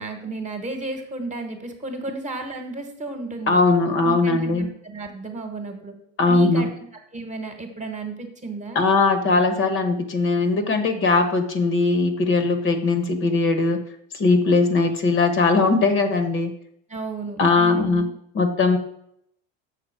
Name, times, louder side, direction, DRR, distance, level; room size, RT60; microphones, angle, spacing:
voice 1, 0.0-3.6 4.0-5.9 6.3-6.7 7.1-8.8 16.9-18.1, right 3 dB, 20° right, 5 dB, 1.2 m, -33 dB
voice 2, 3.5-4.7 6.2-6.7 8.7-13.8 14.1-16.5 17.4-18.1 18.3-18.8, left 3 dB, 40° left, 7 dB, 1.0 m, -20 dB
6.7 x 4.1 x 6.5 m, 0.71 s
supercardioid pair, 115°, 33 cm